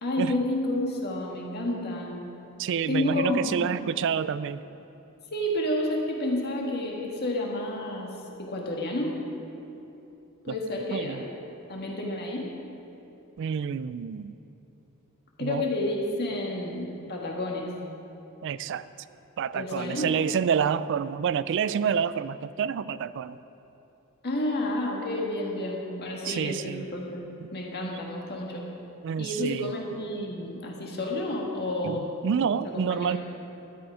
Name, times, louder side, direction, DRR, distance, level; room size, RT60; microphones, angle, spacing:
voice 1, 0.0-2.1 2.9-3.7 5.3-8.1 8.4-9.2 10.4-11.3 11.7-12.4 15.4-17.7 19.5-20.1 24.2-27.2 27.5-28.6 29.2-32.3 32.7-33.2, left 1 dB, 50° left, -1 dB, 1.6 m, -30 dB
voice 2, 2.6-4.6 10.5-10.6 10.9-11.2 13.4-14.3 15.4-15.6 18.4-18.9 19.4-23.4 26.2-26.9 29.0-29.7 31.8-33.2, right 7 dB, 55° right, 16 dB, 0.3 m, -28 dB
13.0 x 9.4 x 4.9 m, 2.9 s
head